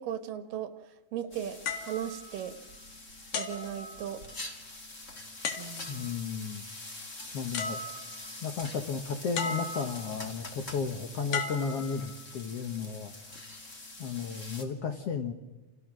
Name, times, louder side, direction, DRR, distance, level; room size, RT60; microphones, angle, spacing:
voice 1, 0.0-1.6 1.9-2.6 3.3-4.2 5.6-6.1, right 10 dB, 75° right, 10 dB, 2.8 m, -37 dB
sound 1, 1.3-14.6, left 2 dB, 25° left, 2.4 m, -45 dB
sound 2, 1.7-2.9 3.3-4.5 5.4-6.1 7.2-7.3 7.5-8.4 9.4-10.2 11.3-12.4 13.1-13.4, left 5 dB, 80° left, 3.7 m, -37 dB
voice 2, 5.9-6.6 7.3-7.8 8.4-13.1 14.0-15.3, left 5 dB, 60° left, 6 dB, 1.7 m, -34 dB
29.5 x 28.5 x 6.2 m, 1.1 s
omnidirectional pair, 4.0 m